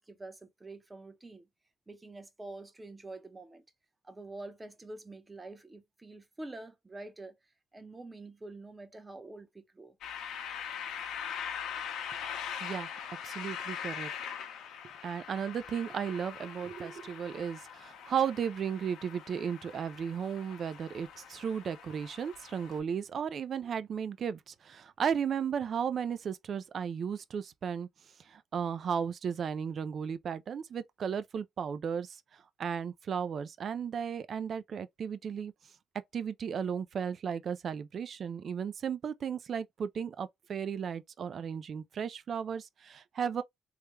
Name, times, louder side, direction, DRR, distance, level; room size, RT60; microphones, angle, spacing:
voice 1, 0.0-1.5 1.9-3.6 4.0-7.4 7.7-10.0, right 2 dB, 20° right, 0.7 m, -46 dB
sound 1, 10.0-22.8, left 8 dB, 85° left, 0.7 m, -42 dB
voice 2, 12.6-14.1 15.0-27.9 28.3-32.2 32.6-35.5 36.1-43.4, right 7 dB, 55° right, 0.4 m, -35 dB
3.2 x 2.2 x 3.1 m
cardioid pair, 90°, 0 cm